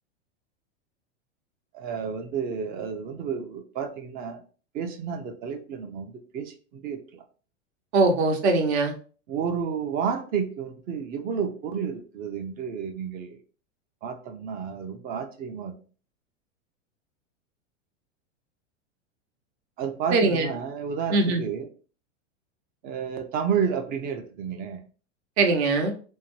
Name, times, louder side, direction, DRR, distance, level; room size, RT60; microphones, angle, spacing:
voice 1, 1.7-4.4 4.7-7.2 9.3-13.4 14.0-15.7 19.8-21.7 22.8-24.8, right 7 dB, 25° right, 6 dB, 0.4 m, -31 dB
voice 2, 7.9-8.9 20.1-20.5 21.1-21.4 25.4-25.9, right 3 dB, 65° right, 5 dB, 0.8 m, -21 dB
2.6 x 2.1 x 3.0 m, 0.38 s
hypercardioid pair, 120°, 36 cm